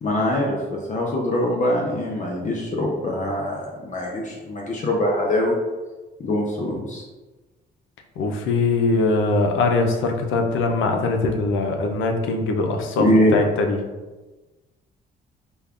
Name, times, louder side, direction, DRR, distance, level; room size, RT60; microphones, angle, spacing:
voice 1, 0.0-5.6 6.2-7.0 13.0-13.4, left 1 dB, 40° left, -1 dB, 0.6 m, -23 dB
voice 2, 8.2-13.1 13.3-13.8, left 3 dB, 85° left, 4 dB, 0.5 m, -21 dB
5.1 x 2.2 x 2.4 m, 1.2 s
cardioid pair, 90°, 20 cm